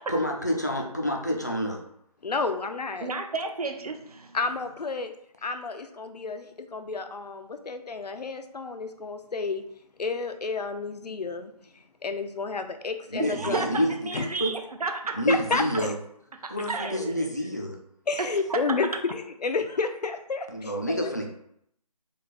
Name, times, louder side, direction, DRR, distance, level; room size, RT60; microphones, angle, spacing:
voice 1, 0.1-1.8 13.1-13.9 14.2-14.5 15.1-15.9 16.5-17.8 20.5-21.3, equal, 25° left, 1 dB, 0.3 m, -28 dB
voice 2, 2.2-3.1 4.3-5.1 5.4-9.6 10.0-11.5 12.0-13.8 14.1-14.3 15.3-15.9 16.6-16.7 18.1-21.1, left 4 dB, 85° left, 8 dB, 0.5 m, -31 dB
voice 3, 3.0-4.4 13.2-15.2 15.5-15.9 16.4-17.1 18.2-18.9, right 3 dB, 70° right, 5 dB, 0.6 m, -32 dB
3.2 x 2.2 x 4.0 m, 0.73 s
figure-of-eight pair, 165°, 20 cm